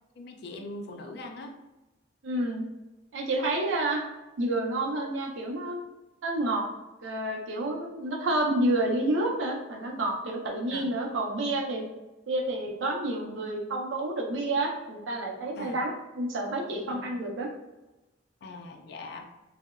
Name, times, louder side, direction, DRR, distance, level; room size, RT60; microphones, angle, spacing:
voice 1, 0.2-1.6 10.7-10.9 15.6-15.8 16.9-17.2 18.4-19.3, left 2 dB, 60° left, 3 dB, 0.3 m, -41 dB
voice 2, 2.2-2.6 3.1-4.0 4.4-5.8 6.2-6.7 7.0-11.8 12.3-17.5, right 1 dB, 80° right, 1 dB, 0.5 m, -29 dB
2.7 x 2.0 x 2.3 m, 1.0 s
head